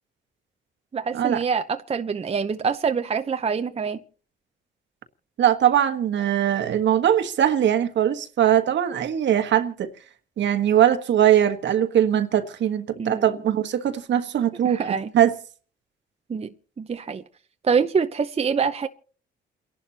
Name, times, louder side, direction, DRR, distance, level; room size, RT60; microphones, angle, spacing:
voice 1, 0.9-4.0 13.0-13.4 14.6-15.1 16.3-17.2 17.6-18.9, right 5 dB, 30° right, 0.8 m, -25 dB
voice 2, 5.4-9.9 10.4-14.8 15.1-15.3, right 10 dB, 65° right, 1.5 m, -21 dB
29.0 x 11.5 x 2.9 m
cardioid pair, 90°, 20 cm